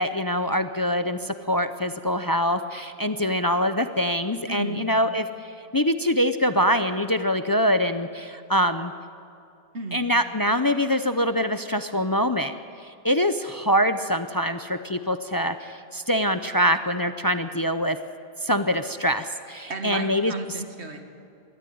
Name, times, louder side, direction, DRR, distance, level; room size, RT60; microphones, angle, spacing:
voice 1, 0.0-5.3 5.7-8.9 9.9-12.5 12.8-18.0 18.4-20.3, equal, 25° left, 10 dB, 0.6 m, -24 dB
voice 2, 4.5-4.8 9.7-10.0 19.7-21.0, right 3 dB, 85° right, 5 dB, 2.2 m, -34 dB
22.0 x 13.5 x 9.4 m, 2.6 s
omnidirectional pair, 1.1 m